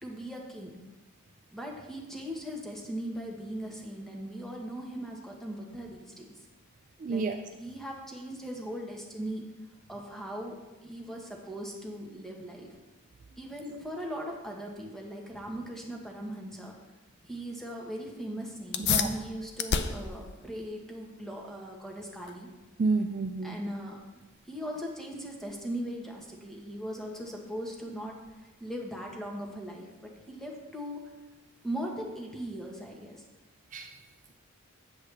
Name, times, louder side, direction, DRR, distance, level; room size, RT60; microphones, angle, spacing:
voice 1, 0.0-0.7 1.5-6.4 7.1-9.4 9.9-12.8 13.4-16.7 17.2-22.5 23.4-24.0 24.4-28.1 28.4-31.0 31.6-33.2, equal, ahead, -1 dB, 1.1 m, -39 dB
voice 2, 7.0-7.4 18.9-19.1 22.8-23.6 33.7-33.9, right 4 dB, 35° right, 5 dB, 0.3 m, -29 dB
sound 1, 18.7-28.7, left 7 dB, 50° left, 0.5 m, -37 dB
8.0 x 7.8 x 3.4 m, 1.1 s
head